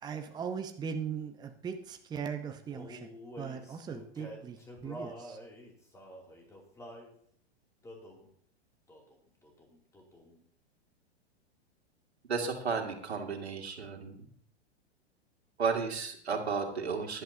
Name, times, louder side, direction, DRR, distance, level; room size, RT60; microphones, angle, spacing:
voice 1, 0.0-3.1 3.4-5.4, right 6 dB, 15° right, 6 dB, 0.8 m, -39 dB
Male singing, 2.7-7.1 7.8-8.3 8.9-9.2 9.4-10.4, equal, 10° left, 2.7 m, -48 dB
voice 2, 12.3-14.2 15.6-17.2, right 5 dB, 75° right, 2 dB, 2.4 m, -33 dB
16.5 x 11.5 x 2.8 m, 0.63 s
figure-of-eight pair, 105°, 32 cm